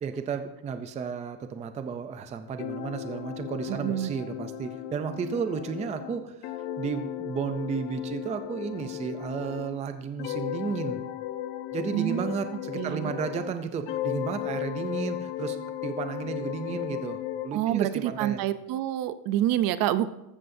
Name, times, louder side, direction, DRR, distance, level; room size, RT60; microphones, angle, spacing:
voice 1, 0.0-11.0 11.7-17.2 17.4-18.4, right 6 dB, 20° right, 9 dB, 0.4 m, -33 dB
sound 1, 2.6-9.8 10.2-13.6 13.9-17.5, left 11 dB, 80° left, 1.0 m, -35 dB
voice 2, 3.7-4.2 11.9-12.3 12.8-13.1 17.5-20.1, right 12 dB, 55° right, 13 dB, 0.6 m, -27 dB
14.5 x 13.5 x 2.7 m, 0.90 s
cardioid pair, 180°, 41 cm